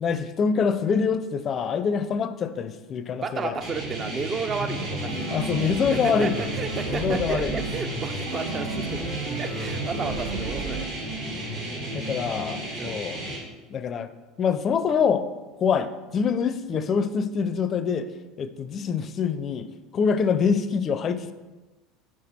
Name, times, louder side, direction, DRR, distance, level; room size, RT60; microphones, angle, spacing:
voice 1, 0.0-3.5 5.3-6.4 6.9-7.5 11.3-11.4 11.9-13.3 13.7-14.1 14.4-15.3 15.6-15.9 16.1-18.1 18.4-19.7 19.9-21.3, left 6 dB, 40° left, 12 dB, 0.4 m, -25 dB
voice 2, 3.1-5.4 5.9-9.0 9.4-10.9 12.8-13.0, right 5 dB, 35° right, 9 dB, 0.6 m, -32 dB
sound 1, 3.6-13.4, right 2 dB, 60° right, 2.2 m, -33 dB
sound 2, 4.5-10.8, right 2 dB, 80° right, 1.1 m, -33 dB
5.9 x 4.7 x 4.2 m, 1.2 s
hypercardioid pair, 85°, 0 cm